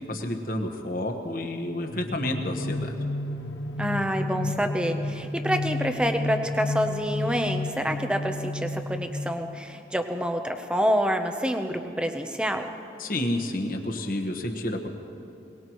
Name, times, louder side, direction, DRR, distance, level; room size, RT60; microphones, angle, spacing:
voice 1, 0.1-2.9 13.0-14.9, left 1 dB, 50° left, 4 dB, 1.3 m, -30 dB
sound 1, 1.9-9.8, left 2 dB, 90° left, 1.1 m, -32 dB
voice 2, 3.8-12.7, equal, 5° right, 5 dB, 0.7 m, -27 dB
22.5 x 19.5 x 3.1 m, 2.8 s
head